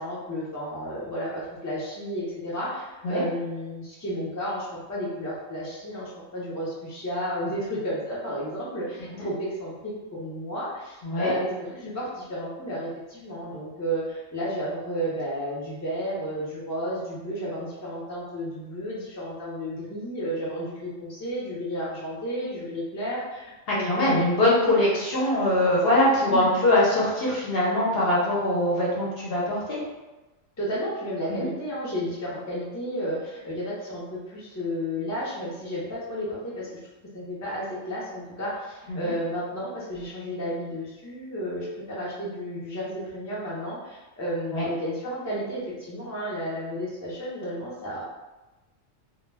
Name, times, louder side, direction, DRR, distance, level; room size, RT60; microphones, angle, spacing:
voice 1, 0.0-24.3 26.2-26.4 30.6-36.7 37.1-48.0, equal, 20° left, -7 dB, 0.4 m, -32 dB
voice 2, 11.0-11.4 23.7-29.8 31.3-31.5 38.9-39.1 44.5-44.7, left 1 dB, 55° left, -6 dB, 0.8 m, -23 dB
2.2 x 2.2 x 3.3 m, 1.1 s
omnidirectional pair, 1.4 m